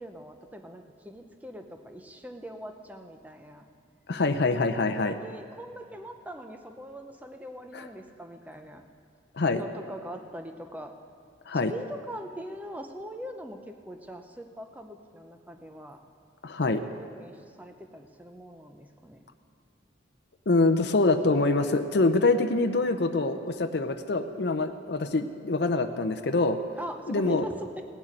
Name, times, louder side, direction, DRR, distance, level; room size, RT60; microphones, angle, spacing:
voice 1, 0.0-3.6 4.9-8.8 9.5-10.9 11.7-16.0 16.9-19.2 26.8-27.8, equal, 10° right, 5 dB, 0.7 m, -42 dB
voice 2, 4.1-5.1 7.7-7.9 9.3-9.6 11.5-11.7 16.4-16.8 20.5-26.6 27.1-27.4, left 3 dB, 60° left, 7 dB, 0.6 m, -25 dB
17.5 x 6.2 x 8.8 m, 2.3 s
head